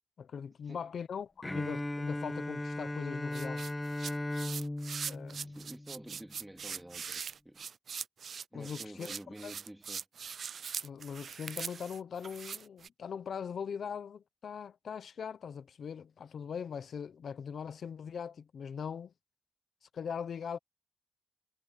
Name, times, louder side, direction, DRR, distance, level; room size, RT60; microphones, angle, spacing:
voice 1, 0.2-3.6 5.1-5.5 8.5-9.1 9.4-9.5 10.8-19.1 19.9-20.6, left 7 dB, 80° left, 0.8 m, -41 dB
Bowed string instrument, 1.4-6.3, left 1 dB, 15° left, 1.1 m, -37 dB
sound 1, 3.3-12.9, right 6 dB, 70° right, 0.3 m, -41 dB
voice 2, 5.4-7.7 8.5-10.0, right 1 dB, 10° right, 2.8 m, -49 dB
cardioid pair, 85°, 0 cm